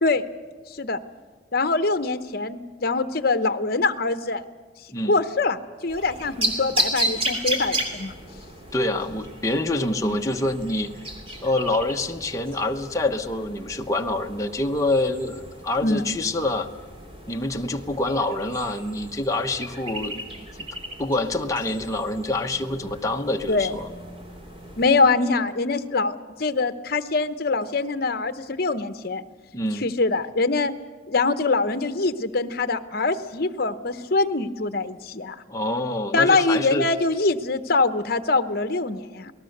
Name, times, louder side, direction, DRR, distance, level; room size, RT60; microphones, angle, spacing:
voice 1, 1.5-4.4 5.1-5.6 5.8-8.1 10.0-10.1 15.8-16.0 23.5-23.8 24.8-29.2 29.8-30.7 31.1-35.4 36.1-39.3, left 3 dB, 50° left, 11 dB, 1.0 m, -23 dB
sound 1, 5.9-24.9, right 1 dB, 30° right, 3.0 m, -34 dB
voice 2, 8.7-10.9 11.4-16.7 17.3-20.2 20.6-20.7 21.0-23.9 29.5-29.9 35.5-36.9, left 2 dB, 15° left, 3 dB, 1.0 m, -26 dB
28.5 x 19.0 x 6.6 m, 1.5 s
head